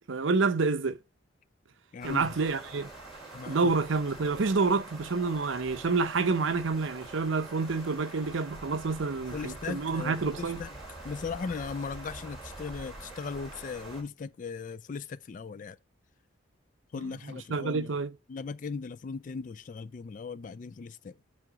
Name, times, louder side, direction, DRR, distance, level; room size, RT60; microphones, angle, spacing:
voice 1, 0.1-1.0 2.0-2.9 3.5-10.6 17.0-18.2, right 4 dB, 75° right, 0.6 m, -28 dB
voice 2, 1.9-2.3 3.3-3.7 9.3-10.7 11.0-15.8 16.9-17.9 18.3-21.1, left 5 dB, 40° left, 0.3 m, -38 dB
sound 1, 2.0-14.0, right 2 dB, ahead, 2.9 m, -45 dB
7.6 x 3.5 x 4.9 m
head